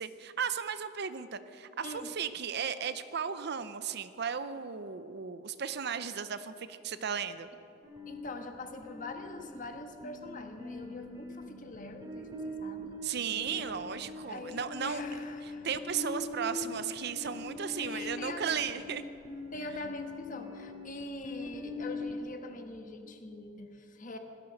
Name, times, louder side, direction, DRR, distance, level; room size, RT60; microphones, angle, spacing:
voice 1, 0.0-7.5 13.0-15.0 15.4-19.0, right 7 dB, 55° right, 12 dB, 0.6 m, -35 dB
sound 1, 7.8-22.2, left 2 dB, 15° right, 2.5 m, -42 dB
voice 2, 8.1-12.9 13.4-13.8 14.3-15.7 17.8-18.8 19.5-24.2, left 2 dB, 40° left, 5 dB, 1.4 m, -44 dB
17.0 x 13.0 x 6.5 m, 2.8 s
head